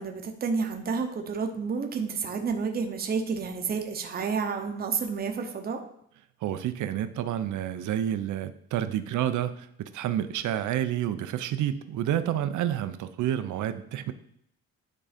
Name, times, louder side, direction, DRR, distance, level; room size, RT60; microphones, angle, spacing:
voice 1, 0.0-5.8, right 5 dB, 30° right, 5 dB, 0.8 m, -30 dB
voice 2, 6.4-14.1, right 11 dB, 80° right, 11 dB, 0.6 m, -29 dB
9.7 x 3.8 x 5.0 m, 0.70 s
cardioid pair, 160°, 29 cm